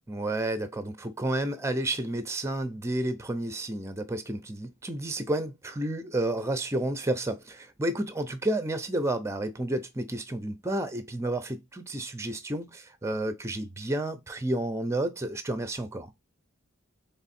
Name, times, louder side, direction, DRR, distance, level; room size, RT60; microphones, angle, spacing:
voice 1, 0.1-16.1, right 1 dB, 15° right, 0.6 m, -31 dB
3.6 x 3.5 x 4.2 m
head